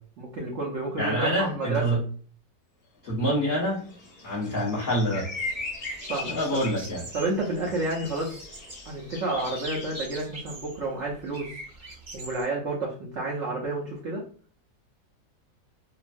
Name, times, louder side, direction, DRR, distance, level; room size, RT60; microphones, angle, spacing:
voice 1, 0.2-2.0 6.1-6.7 7.1-8.3 8.9-11.6 12.1-14.2, right 2 dB, 85° right, -2 dB, 0.6 m, -30 dB
voice 2, 1.0-2.0 3.0-3.8 4.2-5.3 6.3-7.0, equal, 35° left, -7 dB, 1.2 m, -26 dB
sound 1, 3.5-10.1, left 3 dB, 55° left, 0.5 m, -39 dB
sound 2, 5.4-12.5, right 2 dB, 50° right, 0.8 m, -44 dB
2.9 x 2.3 x 2.5 m, 0.43 s
omnidirectional pair, 2.0 m